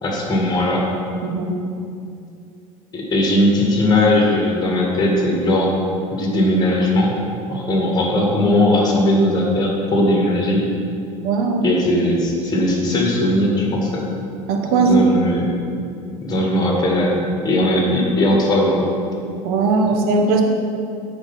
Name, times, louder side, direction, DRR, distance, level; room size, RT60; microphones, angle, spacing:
voice 1, 0.0-0.9 2.9-5.7 6.1-7.1 7.5-10.6 11.6-14.1 14.8-15.5 16.2-18.9, left 1 dB, 20° left, -2 dB, 2.1 m, -18 dB
voice 2, 1.2-1.6 11.2-11.6 14.5-15.0 19.4-20.4, right 4 dB, 60° right, 3 dB, 1.2 m, -18 dB
8.9 x 4.6 x 6.0 m, 2.5 s
hypercardioid pair, 75°, 18 cm